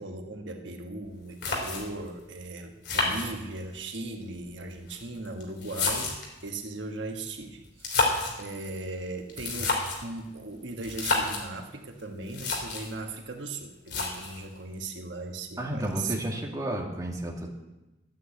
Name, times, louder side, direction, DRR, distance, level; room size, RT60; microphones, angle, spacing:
voice 1, 0.0-16.1, right 2 dB, 85° right, 4 dB, 1.3 m, -38 dB
sound 1, 1.0-1.1 1.4-2.1 2.8-3.8 4.7-6.4 7.7-8.4 9.3-10.1 10.8-11.5 12.0-12.1 12.3-12.9 13.9-14.5, left 3 dB, 65° left, 3.4 m, -29 dB
voice 2, 15.6-17.5, right 1 dB, 20° right, -1 dB, 2.1 m, -32 dB
11.5 x 9.3 x 8.2 m, 1.0 s
head